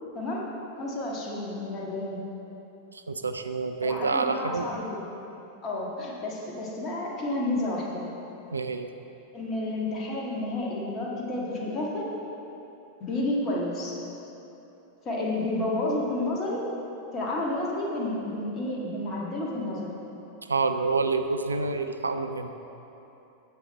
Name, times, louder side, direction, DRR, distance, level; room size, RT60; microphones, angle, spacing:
voice 1, 0.1-0.5 0.8-2.2 3.8-5.0 5.6-8.1 9.3-12.1 13.0-14.0 15.1-16.6 17.1-19.9, left 1 dB, 30° left, -3 dB, 1.8 m, -30 dB
voice 2, 2.9-4.7 8.5-8.9 20.5-22.5, right 4 dB, 75° right, 8 dB, 0.4 m, -28 dB
9.5 x 8.0 x 4.3 m, 3.0 s
figure-of-eight pair, 90°, 0 cm